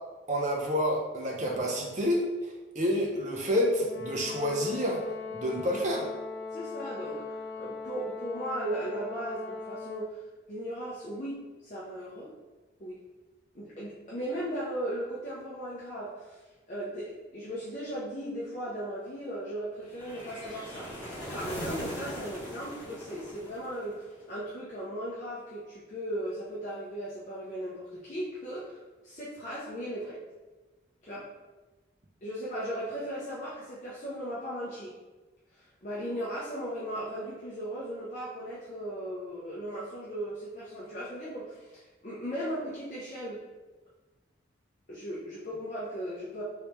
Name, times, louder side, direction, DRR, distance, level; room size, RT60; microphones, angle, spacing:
voice 1, 0.3-2.2 2.8-5.0 5.3-6.1, equal, 40° right, 0 dB, 0.6 m, -28 dB
Brass instrument, 3.8-10.2, left 4 dB, 80° left, 0.8 m, -39 dB
voice 2, 6.5-10.2 10.5-12.3 12.8-13.0 13.5-16.4 16.7-20.9 21.3-30.2 31.0-31.3 32.2-34.9 35.5-43.4 44.9-46.4, right 1 dB, 40° left, -8 dB, 0.6 m, -37 dB
sound 1, 19.9-24.1, equal, 10° left, 1.0 m, -40 dB
3.2 x 3.2 x 2.9 m, 1.2 s
head